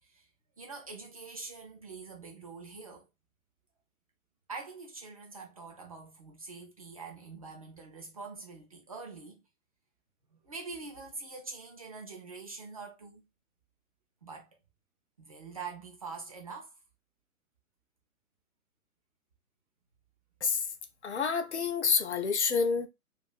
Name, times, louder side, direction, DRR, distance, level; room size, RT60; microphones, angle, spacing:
voice 1, 0.6-3.1 4.5-9.4 10.3-13.2 14.2-14.6 15.2-16.7, right 4 dB, 25° right, 0.5 m, -44 dB
voice 2, 21.0-22.9, left 5 dB, 50° left, 0.6 m, -28 dB
2.6 x 2.5 x 4.0 m
figure-of-eight pair, 130°, 44 cm